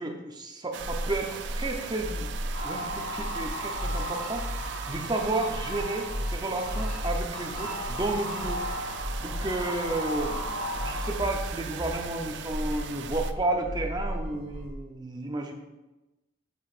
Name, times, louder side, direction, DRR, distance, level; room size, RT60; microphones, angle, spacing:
voice 1, 0.0-2.3 2.6-4.5 4.9-8.6 9.2-15.5, right 2 dB, 25° right, 3 dB, 0.7 m, -32 dB
sound 1, 0.7-13.3, right 7 dB, 70° right, 0.4 m, -40 dB
sound 2, 0.8-14.7, equal, 5° right, 2.1 m, -36 dB
sound 3, 2.5-11.1, equal, 35° left, 1.9 m, -36 dB
7.9 x 6.1 x 2.5 m, 1.0 s
head